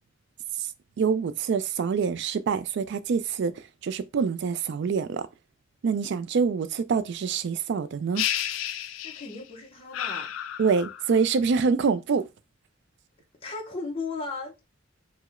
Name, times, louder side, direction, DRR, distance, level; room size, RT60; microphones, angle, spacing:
voice 1, 1.0-3.5 3.8-5.3 5.8-8.2 10.6-12.3, right 5 dB, 60° right, 0.3 m, -25 dB
sound 1, 8.2-9.5 9.9-11.2, left 11 dB, 90° left, 0.3 m, -31 dB
voice 2, 9.0-10.3 13.4-14.6, left 3 dB, 30° left, 0.6 m, -36 dB
4.6 x 2.1 x 2.4 m
head